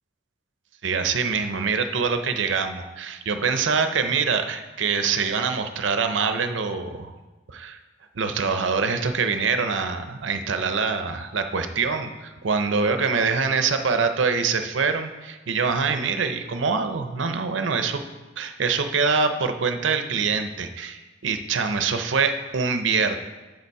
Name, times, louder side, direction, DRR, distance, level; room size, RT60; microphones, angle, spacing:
voice 1, 0.8-7.1 7.5-7.8 8.1-18.0 18.4-23.2, right 5 dB, 85° right, 8 dB, 0.7 m, -24 dB
7.9 x 6.8 x 4.7 m, 1.2 s
head